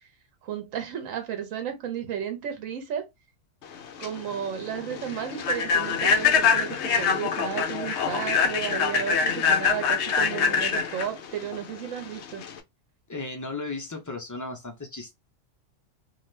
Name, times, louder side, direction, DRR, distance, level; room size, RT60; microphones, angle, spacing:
voice 1, 0.4-3.1 4.0-12.4, right 9 dB, 80° right, 1.2 m, -33 dB
Human voice / Train, 3.7-12.6, left 6 dB, 65° left, 0.8 m, -25 dB
voice 2, 13.1-15.2, left 3 dB, 30° left, 0.3 m, -35 dB
2.7 x 2.4 x 3.2 m
omnidirectional pair, 1.3 m